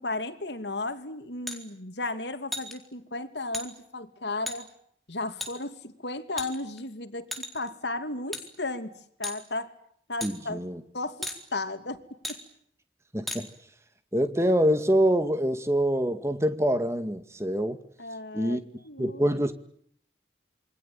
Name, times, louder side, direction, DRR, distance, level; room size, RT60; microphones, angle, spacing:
voice 1, 0.0-4.7 5.1-9.7 10.1-10.7 10.9-12.0 18.0-19.4, left 2 dB, 75° left, 2.8 m, -35 dB
sound 1, 1.5-1.6 2.5-2.7 3.5-3.7 4.5-4.6 5.4-5.5 6.4-6.8 7.3-7.7 8.3-8.4 9.2-9.4 10.2-10.3 11.2-11.4 12.2-12.4 13.3-13.4, left 1 dB, ahead, 4.1 m, -34 dB
voice 2, 10.2-10.8 13.1-13.5 14.1-17.8 18.3-18.6 19.0-19.5, equal, 15° right, 2.1 m, -25 dB
28.0 x 23.5 x 8.9 m
head